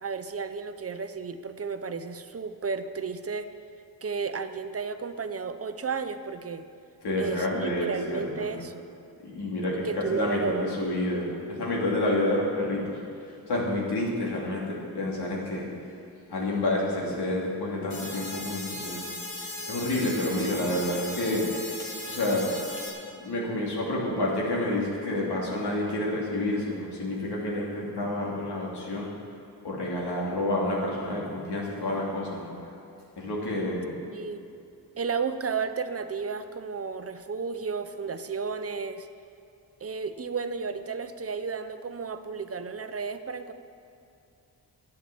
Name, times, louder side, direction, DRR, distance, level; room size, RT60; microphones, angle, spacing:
voice 1, 0.0-3.5 4.0-6.6 7.2-8.8 9.8-10.9 34.1-34.4 35.0-39.1 39.8-43.5, right 5 dB, 35° right, 10 dB, 0.7 m, -33 dB
voice 2, 7.0-8.5 9.2-15.6 16.3-19.1 19.4-21.5 22.1-22.5 23.2-29.1 29.6-32.5 33.2-33.9, left 1 dB, 75° left, -3 dB, 3.1 m, -29 dB
sound 1, 17.9-22.9, left 1 dB, 55° left, 3.1 m, -37 dB
11.0 x 8.8 x 7.8 m, 2.6 s
cardioid pair, 90°, 40 cm